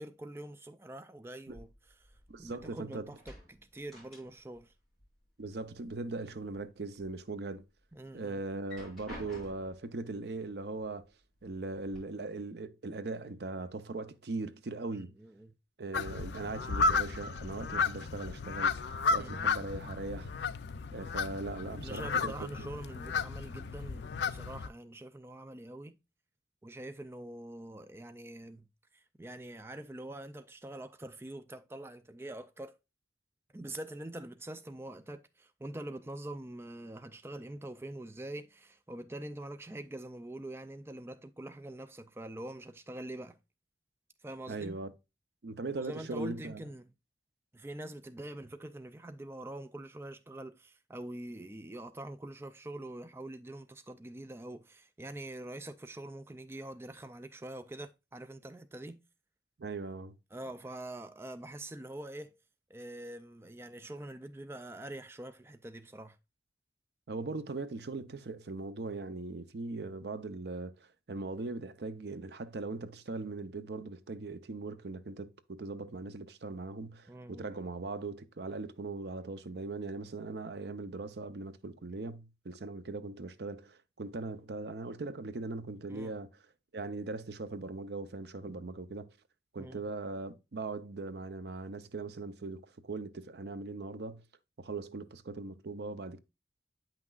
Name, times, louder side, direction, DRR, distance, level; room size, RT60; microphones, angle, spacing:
voice 1, 0.0-4.7 7.9-8.4 14.9-15.5 19.1-19.5 21.8-26.0 26.6-32.7 33.5-43.4 44.2-44.8 45.8-46.9 47.5-59.0 60.3-62.3 62.7-66.2 77.1-77.5 85.9-86.1 89.6-89.8, right 1 dB, 15° right, 0.4 m, -45 dB
sound 1, 1.5-2.8 3.1-4.7 4.9-5.9 6.3-7.1 7.6-7.7 8.5-9.9 10.8-10.9 11.3-12.0, left 1 dB, ahead, 4.8 m, -51 dB
voice 2, 2.3-3.1 5.4-7.7 8.1-11.1 11.4-15.1 15.8-18.8 19.1-20.3 20.9-22.7 44.5-44.9 45.4-46.6 59.6-60.2 67.1-86.3 86.7-89.1 89.5-94.2 94.6-96.2, right 3 dB, 70° right, 0.6 m, -40 dB
sound 2, 15.9-24.7, left 4 dB, 80° left, 0.4 m, -33 dB
8.7 x 5.9 x 2.4 m
head